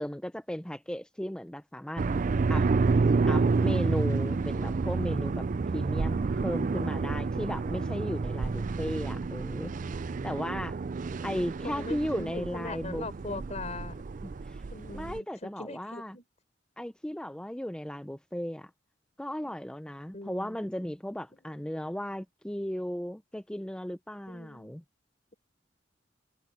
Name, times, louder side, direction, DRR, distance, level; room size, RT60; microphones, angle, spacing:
voice 1, 0.0-2.0 2.5-2.7 3.3-5.5 5.7-9.9 10.2-10.8 11.2-13.4 14.2-14.6 14.9-16.2 16.8-18.7 19.2-24.8, equal, 5° left, 0.6 m, -36 dB
sound 1, 2.0-15.2, right 4 dB, 45° right, 0.4 m, -29 dB
voice 2, 11.6-14.0 14.7-16.2 20.1-20.6 24.3-24.8, left 2 dB, 40° left, 4.1 m, -41 dB
head